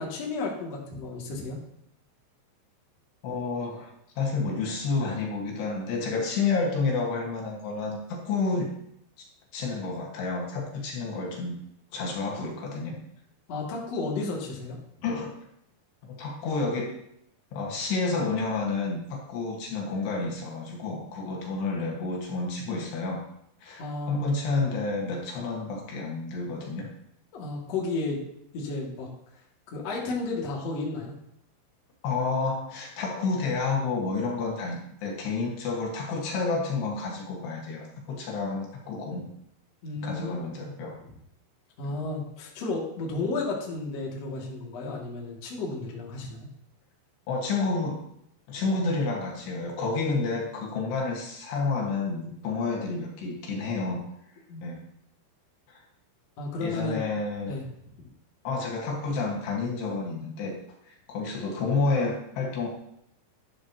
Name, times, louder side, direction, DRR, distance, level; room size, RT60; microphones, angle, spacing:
voice 1, 0.0-1.6 13.5-14.8 23.8-24.2 27.3-28.2 28.5-29.1 29.7-31.1 39.8-40.8 41.8-46.5 54.5-54.7 56.4-57.0 57.5-57.6, left 3 dB, 50° left, -3 dB, 2.2 m, -33 dB
voice 2, 3.2-3.9 4.2-8.7 9.5-11.6 11.9-13.0 15.0-15.4 16.1-17.0 17.5-23.2 23.6-26.9 32.0-39.3 40.0-41.0 41.8-41.9 47.3-48.0 48.5-54.1 54.6-54.8 55.7-55.8 56.6-57.6 58.4-62.7, left 3 dB, 65° left, -1 dB, 3.3 m, -30 dB
12.0 x 11.0 x 2.8 m, 0.75 s
omnidirectional pair, 5.7 m